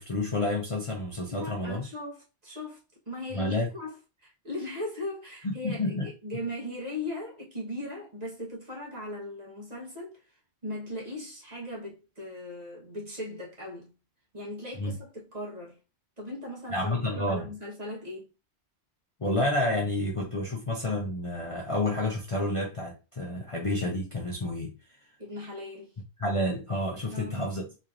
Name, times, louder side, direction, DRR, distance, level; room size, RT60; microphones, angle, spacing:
voice 1, 0.0-1.8 3.3-3.7 5.4-6.1 14.8-14.9 16.7-17.5 19.2-24.7 26.2-27.7, left 1 dB, 35° left, 0.6 m, -29 dB
voice 2, 1.3-2.8 3.1-4.0 4.2-10.2 10.6-13.9 14.3-15.8 16.2-18.3 25.2-25.9 27.1-27.5, left 1 dB, 35° right, 1.3 m, -38 dB
4.2 x 3.1 x 2.5 m
omnidirectional pair, 1.2 m